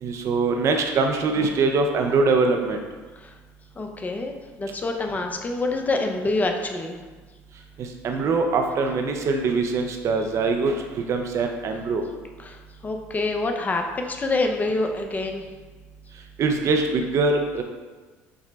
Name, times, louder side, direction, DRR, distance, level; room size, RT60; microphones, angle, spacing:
voice 1, 0.0-2.8 7.8-12.0 16.4-17.6, right 3 dB, 50° right, 4 dB, 0.5 m, -23 dB
voice 2, 3.8-7.0 12.4-15.4, left 2 dB, 25° left, 4 dB, 0.6 m, -26 dB
6.0 x 2.1 x 3.9 m, 1.3 s
supercardioid pair, 80°, 6 cm